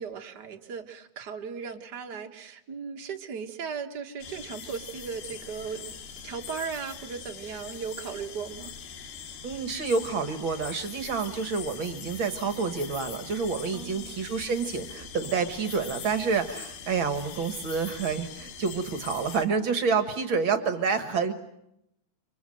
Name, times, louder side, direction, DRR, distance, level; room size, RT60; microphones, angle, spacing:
voice 1, 0.0-5.9 6.2-8.7 13.7-14.2, right 6 dB, 85° right, 3 dB, 0.9 m, -37 dB
sound 1, 4.2-19.5, left 7 dB, 70° left, 4.0 m, -42 dB
voice 2, 9.4-21.3, right 5 dB, 60° right, 8 dB, 1.3 m, -28 dB
29.0 x 24.5 x 7.9 m, 0.79 s
omnidirectional pair, 4.7 m